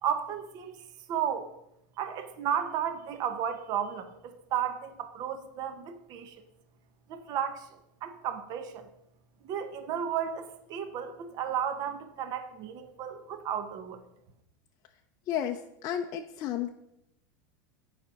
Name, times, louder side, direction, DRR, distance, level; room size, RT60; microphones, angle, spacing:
voice 1, 0.0-0.8 1.1-1.5 2.0-6.4 7.1-7.7 8.0-8.9 9.4-14.0, right 8 dB, 40° right, 9 dB, 0.9 m, -33 dB
voice 2, 15.3-16.7, left 10 dB, 35° left, 3 dB, 0.5 m, -32 dB
9.4 x 5.1 x 5.8 m, 0.82 s
supercardioid pair, 150°, 11 cm